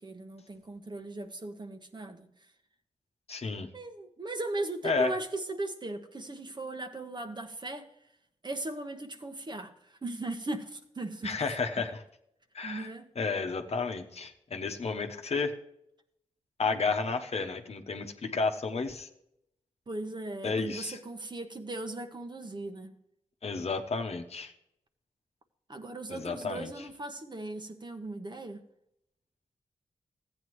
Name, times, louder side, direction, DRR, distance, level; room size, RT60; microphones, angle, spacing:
voice 1, 0.0-2.3 3.7-7.9 8.4-11.6 12.6-13.1 19.9-22.9 25.7-28.6, right 2 dB, 35° right, 1.1 m, -38 dB
voice 2, 3.3-3.7 4.8-5.1 11.2-12.0 12.5-12.9 13.2-15.6 16.6-19.1 20.4-21.0 23.4-24.5 26.1-26.7, left 4 dB, 55° left, 1.0 m, -32 dB
14.5 x 8.8 x 3.1 m
cardioid pair, 55°, 12 cm